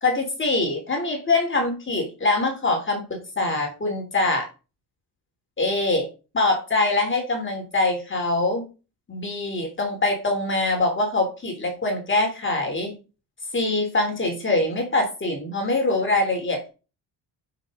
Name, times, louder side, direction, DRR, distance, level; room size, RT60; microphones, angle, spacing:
voice 1, 0.0-4.5 5.6-6.1 6.3-8.6 9.1-12.9 13.5-16.7, left 2 dB, 30° left, 2 dB, 3.1 m, -24 dB
9.1 x 6.2 x 3.7 m, 0.31 s
cardioid pair, 120°, 41 cm